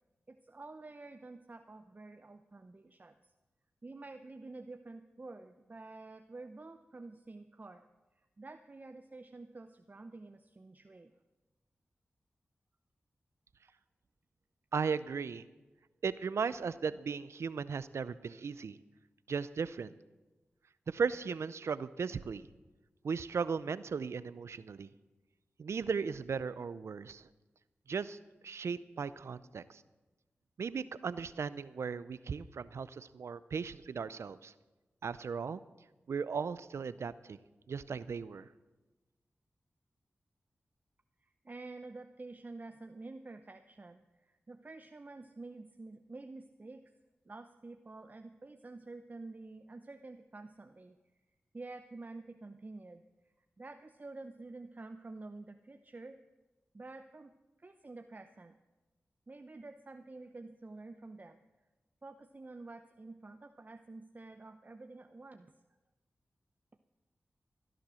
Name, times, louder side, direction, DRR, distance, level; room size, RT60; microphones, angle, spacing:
voice 1, 0.3-3.2 3.8-7.9 8.2-11.1 41.2-46.9 47.2-51.0 51.5-53.0 53.6-56.2 56.7-57.3 57.6-58.6 59.3-61.4 62.0-65.5, right 3 dB, 40° right, 7 dB, 0.7 m, -49 dB
voice 2, 14.7-15.4 16.0-18.8 19.3-19.9 20.9-22.5 23.0-24.9 25.6-27.2 27.9-28.2 28.4-29.8 30.6-34.5 35.0-35.6 36.1-37.4 37.7-38.5, right 5 dB, 80° right, 16 dB, 0.5 m, -36 dB
16.0 x 10.5 x 6.3 m, 1.1 s
cardioid pair, 45°, 5 cm